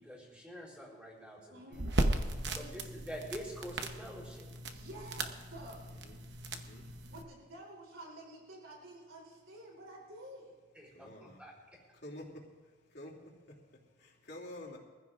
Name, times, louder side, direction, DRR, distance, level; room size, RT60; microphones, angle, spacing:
voice 1, 0.0-1.8 2.5-4.5 10.8-11.5, equal, 5° right, -3 dB, 3.8 m, -46 dB
voice 2, 1.5-1.8 2.4-2.7 4.7-5.9 7.1-10.6, right 1 dB, 80° right, -2 dB, 3.4 m, -50 dB
sound 1, 1.7-7.2, right 2 dB, 55° right, 0.9 m, -37 dB
voice 3, 5.9-6.2 6.5-6.9 10.9-11.4 11.9-12.5 12.9-14.8, left 1 dB, 55° left, -2 dB, 2.8 m, -50 dB
23.5 x 15.0 x 2.5 m, 1.5 s
head